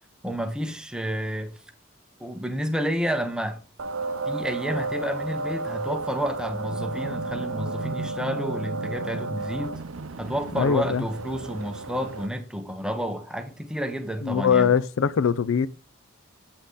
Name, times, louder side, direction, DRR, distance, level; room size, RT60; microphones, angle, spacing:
voice 1, 0.2-1.6 2.2-3.6 4.3-9.8 10.2-14.7, equal, 5° right, 0.8 m, -30 dB
sound 1, 3.8-12.3, right 3 dB, 75° right, 0.6 m, -32 dB
voice 2, 10.5-11.0 14.2-15.7, left 7 dB, 75° left, 0.4 m, -22 dB
8.2 x 5.9 x 3.8 m
head